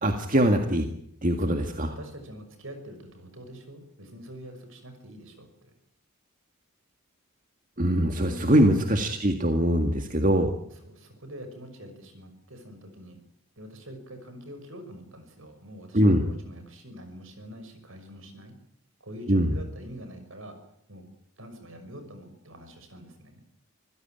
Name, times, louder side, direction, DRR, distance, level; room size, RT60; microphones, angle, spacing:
voice 1, 0.0-0.9 1.2-1.9 7.8-10.5 15.9-16.2 19.3-19.5, equal, 35° right, 5 dB, 1.8 m, -22 dB
voice 2, 1.4-5.7 8.2-8.4 10.7-13.2 13.6-18.5 19.0-20.6 20.9-21.0 21.4-23.4, equal, 65° right, 7 dB, 6.1 m, -45 dB
26.0 x 16.0 x 9.1 m, 0.73 s
head